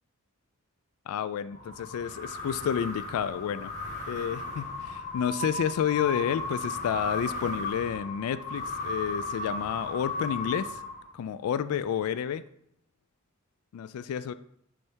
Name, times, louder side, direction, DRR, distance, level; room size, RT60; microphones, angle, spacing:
voice 1, 1.1-3.7 4.1-10.8 11.1-12.4 13.7-14.3, left 8 dB, 80° left, 16 dB, 0.3 m, -30 dB
sound 1, 1.5-11.3, left 2 dB, 35° left, 1.6 m, -35 dB
6.3 x 3.3 x 4.5 m, 0.72 s
head